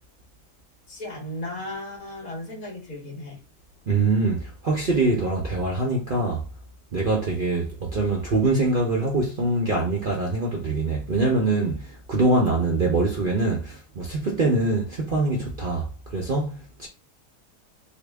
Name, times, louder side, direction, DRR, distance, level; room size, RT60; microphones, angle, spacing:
voice 1, 0.9-3.4, left 1 dB, 60° left, 2.0 m, -35 dB
voice 2, 3.9-6.4 6.9-15.9 16.1-16.9, right 2 dB, 45° right, 0.7 m, -24 dB
3.7 x 2.1 x 3.4 m
omnidirectional pair, 1.6 m